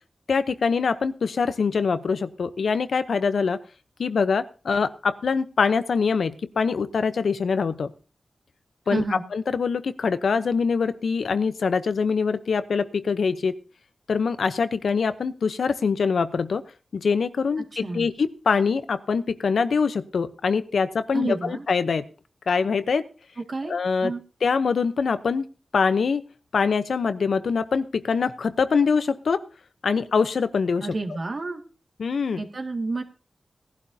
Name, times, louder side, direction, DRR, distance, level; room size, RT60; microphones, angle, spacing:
voice 1, 0.3-3.6 4.0-7.9 8.9-9.0 9.3-13.5 14.1-16.6 16.9-22.0 22.5-23.1 23.7-24.1 24.4-25.5 25.7-26.2 26.5-29.4 29.8-30.9 32.0-32.4, left 5 dB, 85° left, 12 dB, 0.7 m, -24 dB
voice 2, 8.9-9.2 17.7-18.1 21.1-21.6 23.5-23.8 24.0-24.2 30.8-31.6 32.4-33.0, right 3 dB, 55° right, 4 dB, 2.0 m, -29 dB
18.5 x 11.5 x 2.8 m, 0.36 s
wide cardioid pair, 75°, 0 cm